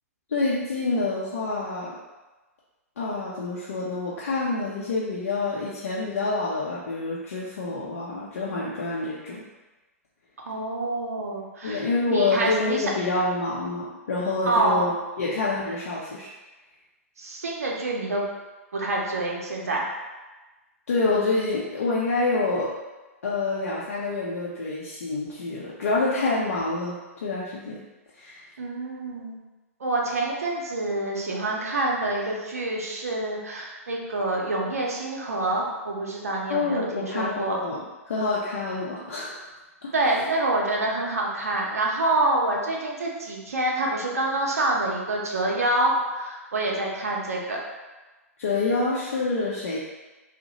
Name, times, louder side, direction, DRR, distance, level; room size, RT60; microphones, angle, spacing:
voice 1, 0.3-2.0 3.0-9.4 11.6-16.3 20.9-22.7 23.2-27.8 28.1-28.4 36.5-39.5 39.8-39.9 48.4-49.8, left 3 dB, 70° left, -6 dB, 0.5 m, -27 dB
voice 2, 10.4-12.9 14.5-14.9 17.2-18.2 18.7-19.9 28.6-29.4 29.8-37.6 39.9-47.6, right 2 dB, 75° right, -2 dB, 0.6 m, -27 dB
2.6 x 2.0 x 2.9 m, 1.2 s
figure-of-eight pair, 110°, 8 cm